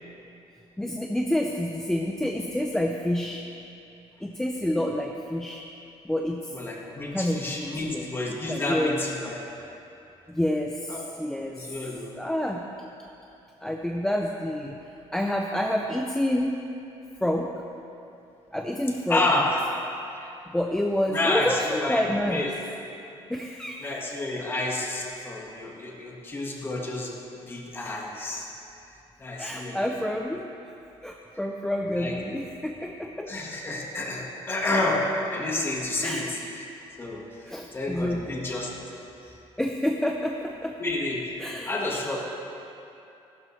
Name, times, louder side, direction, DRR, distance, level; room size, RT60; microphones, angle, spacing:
voice 1, 0.8-3.5 4.2-5.6 6.0-6.5 7.1-9.0 10.3-11.6 12.2-12.6 13.6-14.8 15.1-16.6 17.2-17.5 18.5-19.2 20.5-22.5 23.3-23.9 29.4-30.5 31.0-33.3 36.0-36.3 37.5-38.4 39.6-40.7 41.4-41.7, left 1 dB, 5° left, 1 dB, 0.5 m, -28 dB
voice 2, 6.5-9.4 10.9-11.0 11.5-12.1 19.1-19.6 20.1-20.3 21.1-22.5 23.8-28.5 29.2-30.2 31.9-32.2 33.2-36.6 37.0-37.2 37.7-38.7 40.7-41.2 41.6-42.2, left 2 dB, 20° left, -1 dB, 1.5 m, -29 dB
15.0 x 12.0 x 3.1 m, 2.8 s
cardioid pair, 165°, 11 cm